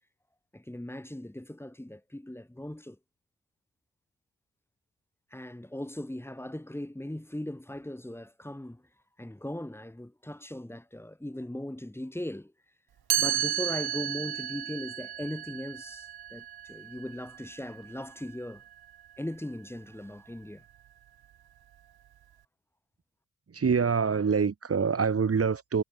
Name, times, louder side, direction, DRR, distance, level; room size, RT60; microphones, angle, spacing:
voice 1, 0.5-3.0 5.3-8.8 9.2-12.5 13.2-18.6 19.2-20.6, left 1 dB, 5° left, 5.5 m, -39 dB
Chime, 13.1-19.0, right 11 dB, 75° right, 5.8 m, -33 dB
voice 2, 23.5-25.8, right 6 dB, 40° right, 4.4 m, -25 dB
cardioid pair, 105°, 38 cm